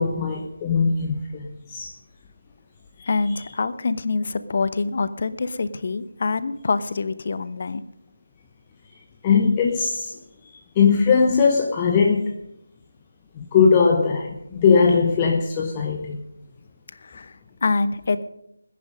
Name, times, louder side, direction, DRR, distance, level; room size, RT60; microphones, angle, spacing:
voice 1, 0.0-1.9 3.0-3.1 9.2-10.1 10.8-12.3 13.4-16.2, left 5 dB, 15° left, 1 dB, 1.0 m, -20 dB
voice 2, 3.1-7.8 17.0-18.2, left 4 dB, 40° left, 14 dB, 0.9 m, -25 dB
20.0 x 10.0 x 5.1 m, 0.79 s
figure-of-eight pair, 160°, 0 cm